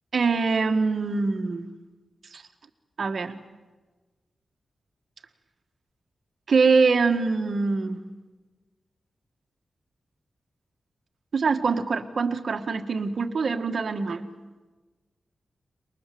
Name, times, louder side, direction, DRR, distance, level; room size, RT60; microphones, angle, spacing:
voice 1, 0.1-1.7 2.3-2.4 3.0-3.4 6.5-8.0 11.3-14.2, right 4 dB, 60° right, 6 dB, 1.7 m, -24 dB
23.0 x 21.5 x 7.8 m, 1.3 s
cardioid pair, 85°, 0 cm